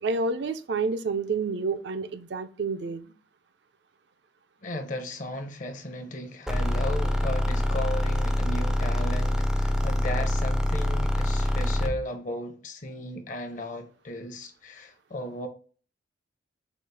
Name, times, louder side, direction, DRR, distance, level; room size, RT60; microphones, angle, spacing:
voice 1, 0.0-3.1, right 4 dB, 65° right, 0.4 m, -29 dB
voice 2, 4.6-15.5, left 1 dB, 45° left, 0.7 m, -36 dB
sound 1, 6.5-12.0, left 1 dB, 5° right, 0.4 m, -25 dB
5.0 x 2.4 x 3.3 m
head